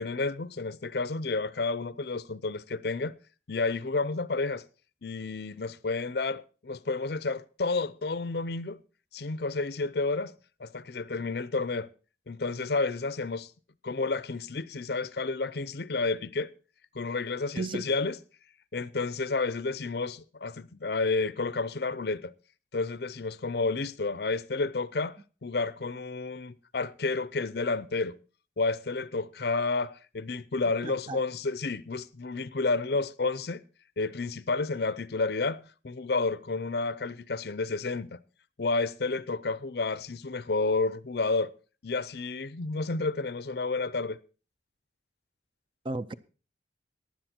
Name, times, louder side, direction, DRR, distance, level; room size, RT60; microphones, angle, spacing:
voice 1, 0.0-3.2 3.5-4.6 5.0-8.8 9.1-10.3 10.6-11.9 12.3-13.5 13.8-16.5 16.9-18.2 18.7-22.3 22.7-28.2 28.6-33.6 34.0-38.2 38.6-41.5 41.8-44.2, left 3 dB, 60° left, 0.6 m, -30 dB
voice 2, 17.6-17.9 30.8-31.2 45.8-46.1, right 2 dB, 25° right, 0.5 m, -33 dB
15.0 x 10.5 x 4.4 m
head